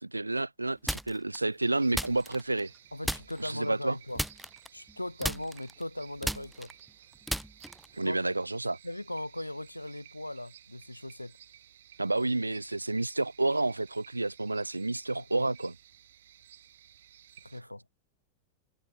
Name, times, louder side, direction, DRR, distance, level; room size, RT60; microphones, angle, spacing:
voice 1, 0.0-2.7 3.4-4.0 7.9-8.8 12.0-15.7, right 2 dB, 85° right, 1.5 m, -30 dB
sound 1, 0.9-1.4 1.9-2.8 3.0-3.6 4.1-4.9 5.2-8.0, right 1 dB, ahead, 1.0 m, -35 dB
sound 2, 1.6-17.6, right 11 dB, 60° right, 7.7 m, -56 dB
voice 2, 2.9-4.2 4.7-6.7 8.0-8.2 8.8-11.4 15.1-15.5 17.4-17.8, left 1 dB, 85° left, 3.8 m, -38 dB
figure-of-eight pair, 90°, 0 cm